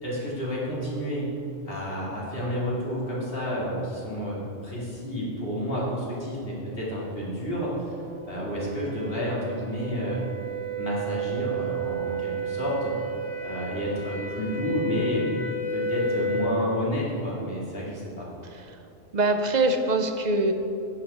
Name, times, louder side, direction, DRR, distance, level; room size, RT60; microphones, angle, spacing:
voice 1, 0.0-1.3 1.7-7.9 8.2-10.2 10.8-12.9 13.4-15.2 15.7-18.2, equal, 45° left, -6 dB, 2.8 m, -30 dB
sound 1, 6.7-16.6, right 3 dB, 15° right, 2.0 m, -32 dB
voice 2, 18.4-18.8 19.1-20.5, right 2 dB, 45° right, 6 dB, 0.6 m, -24 dB
10.0 x 8.9 x 4.2 m, 2.7 s
omnidirectional pair, 1.3 m